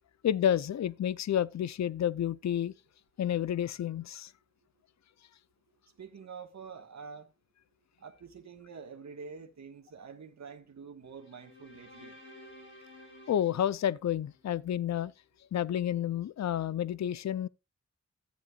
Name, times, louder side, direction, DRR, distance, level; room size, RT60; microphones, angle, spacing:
voice 1, 0.2-2.7 3.2-4.3 13.3-15.1 15.5-17.5, left 10 dB, 65° left, 0.5 m, -30 dB
voice 2, 6.0-7.3 8.0-12.1, right 5 dB, 65° right, 1.5 m, -47 dB
sound 1, 11.1-14.5, left 1 dB, 40° left, 6.3 m, -53 dB
14.0 x 10.0 x 2.4 m
wide cardioid pair, 90°, 29 cm